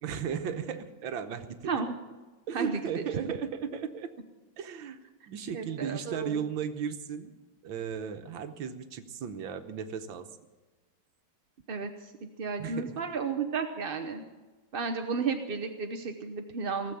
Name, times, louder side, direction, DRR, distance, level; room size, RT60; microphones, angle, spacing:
voice 1, 0.0-1.7 2.5-4.1 4.6-5.0 5.3-7.3 7.6-10.3 12.6-13.0, right 7 dB, 80° right, 8 dB, 1.8 m, -35 dB
voice 2, 2.5-3.0 5.2-5.3 5.5-6.4 11.7-12.1 12.4-14.2 14.7-16.9, right 5 dB, 50° right, 5 dB, 0.6 m, -33 dB
18.5 x 7.4 x 10.0 m, 1.2 s
omnidirectional pair, 2.1 m